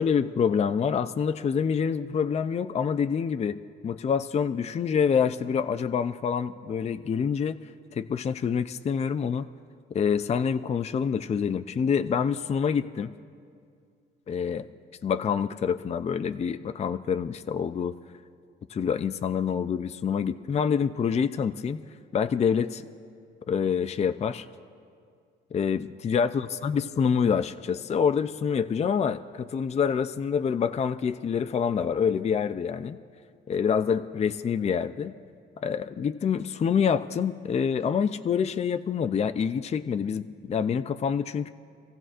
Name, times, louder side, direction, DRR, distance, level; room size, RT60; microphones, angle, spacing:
voice 1, 0.0-3.6 3.8-7.6 7.9-9.5 9.9-13.1 14.3-14.7 15.0-17.9 18.7-21.8 22.1-22.8 23.5-24.5 25.5-33.0 33.5-35.1 35.6-41.5, left 7 dB, 35° left, 10 dB, 0.4 m, -26 dB
26.0 x 15.5 x 2.5 m, 2.3 s
cardioid pair, 90°, 20 cm